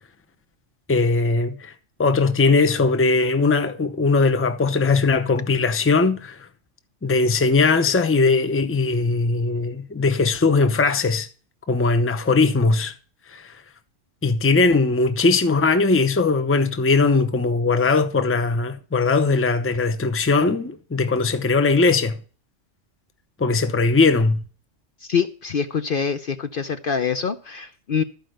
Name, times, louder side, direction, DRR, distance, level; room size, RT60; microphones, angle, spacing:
voice 1, 0.9-1.7 2.0-6.4 7.0-11.3 11.7-12.9 13.3-13.5 14.2-22.2 23.4-24.4, left 3 dB, 15° left, 0.7 m, -19 dB
voice 2, 25.0-28.0, left 6 dB, 50° left, 0.8 m, -25 dB
13.0 x 5.2 x 7.7 m
omnidirectional pair, 1.3 m